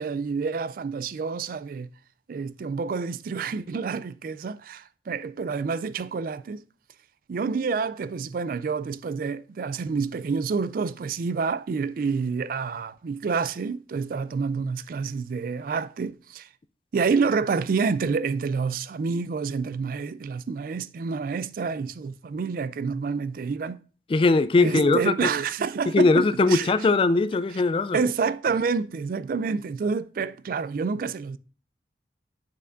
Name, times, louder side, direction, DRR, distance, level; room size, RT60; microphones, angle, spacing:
voice 1, 0.0-1.9 2.3-6.6 7.3-16.5 16.9-23.8 24.6-26.9 27.9-31.4, right 5 dB, 50° right, 0.3 m, -28 dB
voice 2, 24.1-25.1 25.9-28.0, left 3 dB, 30° left, 0.3 m, -20 dB
7.4 x 6.6 x 2.5 m
head